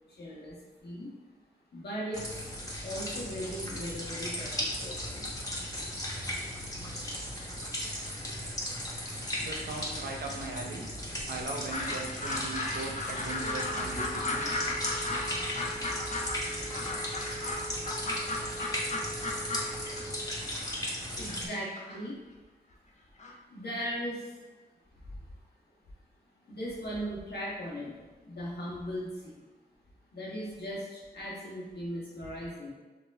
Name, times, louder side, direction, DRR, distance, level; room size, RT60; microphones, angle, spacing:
voice 1, 0.1-1.2 1.7-2.3 2.8-5.3 21.2-22.2 23.5-24.4 25.0-25.3 26.4-29.4 30.1-32.7, equal, 85° left, -5 dB, 1.4 m, -38 dB
sound 1, 2.1-21.5, left 1 dB, 20° left, 1.3 m, -37 dB
voice 2, 9.4-10.9 11.3-14.5, right 3 dB, 75° right, 1 dB, 0.8 m, -39 dB
sound 2, 11.7-20.0 20.4-22.0 23.2-23.3, left 2 dB, 45° left, 0.8 m, -36 dB
Telephone, 13.3-20.3, right 2 dB, 35° right, 0.6 m, -44 dB
5.1 x 2.9 x 3.5 m, 1.2 s
cardioid pair, 65°, 17 cm